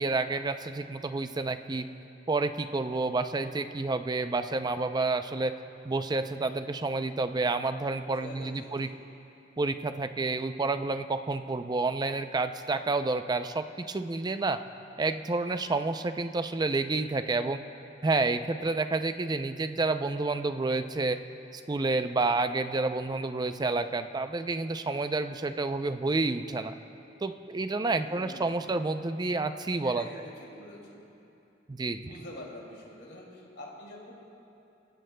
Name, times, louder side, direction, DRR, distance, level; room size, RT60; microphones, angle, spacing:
voice 1, 0.0-1.9 2.3-5.5 5.8-8.9 9.6-14.6 15.0-17.6 18.0-21.2 21.5-26.7 27.2-30.1 31.7-32.0, right 3 dB, 25° right, 9 dB, 0.4 m, -29 dB
voice 2, 8.2-8.9 28.0-28.8 29.8-31.1 32.0-34.1, left 1 dB, 65° left, -3 dB, 2.6 m, -46 dB
26.0 x 15.5 x 2.2 m, 2.8 s
head